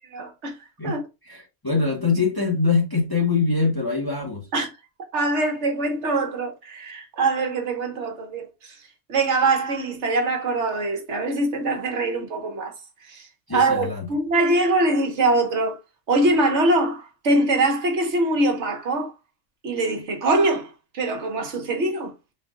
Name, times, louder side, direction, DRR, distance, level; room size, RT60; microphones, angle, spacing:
voice 1, 0.1-0.6 0.8-1.0 4.5-4.7 5.1-8.8 9.1-12.7 13.0-15.8 16.1-19.1 19.6-22.1, right 2 dB, 65° right, 1.3 m, -23 dB
voice 2, 1.2-4.5 13.5-14.0, left 4 dB, 20° left, 1.1 m, -23 dB
4.3 x 2.5 x 3.7 m
omnidirectional pair, 1.3 m